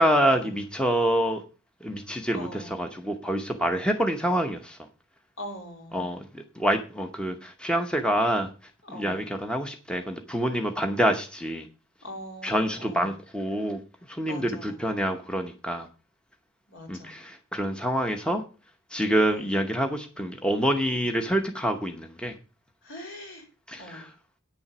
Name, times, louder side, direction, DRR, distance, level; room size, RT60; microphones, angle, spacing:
voice 1, 0.0-1.4 1.8-4.8 5.9-8.5 8.9-11.6 12.4-13.8 14.2-15.9 16.9-18.4 18.9-22.3 23.7-24.1, equal, 5° left, 4 dB, 0.8 m, -26 dB
voice 2, 2.3-2.8 5.4-6.1 8.8-9.3 12.0-13.1 14.2-14.8 16.7-17.2 19.3-19.6 22.8-23.5 23.8-24.1, equal, 65° left, 3 dB, 3.6 m, -42 dB
9.0 x 7.1 x 6.0 m, 0.34 s
head